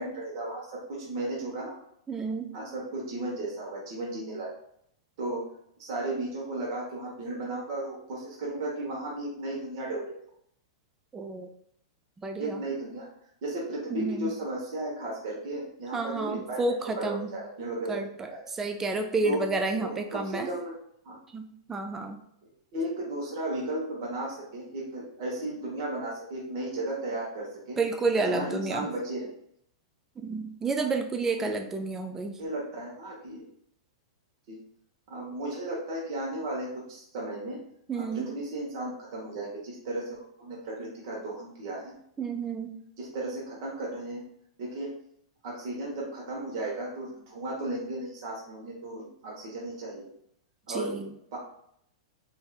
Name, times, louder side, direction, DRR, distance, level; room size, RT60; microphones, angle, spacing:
voice 1, 0.0-1.7 2.5-4.5 5.2-5.5 5.8-10.1 12.4-13.1 13.4-16.6 16.9-18.0 18.3-18.5 19.2-19.5 19.7-20.7 21.0-21.2 22.4-27.8 28.2-29.3 31.3-31.5 32.4-33.5 34.5-34.6 35.1-37.6 37.9-41.9 43.0-44.2 44.6-44.9 45.4-50.1 50.7-50.9 51.3-51.4, right 2 dB, 60° right, -3 dB, 1.1 m, -35 dB
voice 2, 2.1-2.5 11.1-11.5 12.2-12.6 13.9-14.3 15.9-17.3 17.9-20.5 21.3-22.2 27.8-28.9 30.2-32.4 37.9-38.2 42.2-42.8 50.7-51.1, right 3 dB, 15° right, 5 dB, 0.3 m, -30 dB
3.3 x 2.7 x 2.3 m, 0.69 s
hypercardioid pair, 135°, 3 cm